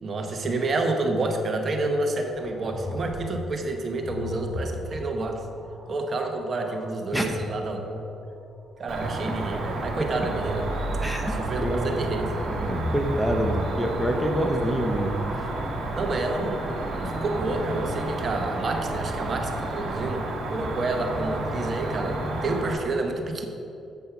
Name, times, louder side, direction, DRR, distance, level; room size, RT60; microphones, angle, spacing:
voice 1, 0.0-5.4 5.9-8.1 8.8-10.7 11.2-12.3 15.9-23.5, right 2 dB, 45° right, 3 dB, 1.1 m, -29 dB
sound 1, 2.4-7.0 10.0-16.1 17.0-17.7, equal, 25° right, 1.9 m, -36 dB
voice 2, 7.1-7.4 11.0-11.3 11.6-11.9 12.5-15.5, equal, ahead, 2 dB, 0.8 m, -27 dB
Cricket, 8.9-22.7, right 2 dB, 60° right, 1.5 m, -31 dB
8.0 x 5.4 x 5.8 m, 2.7 s
cardioid pair, 90°, 0 cm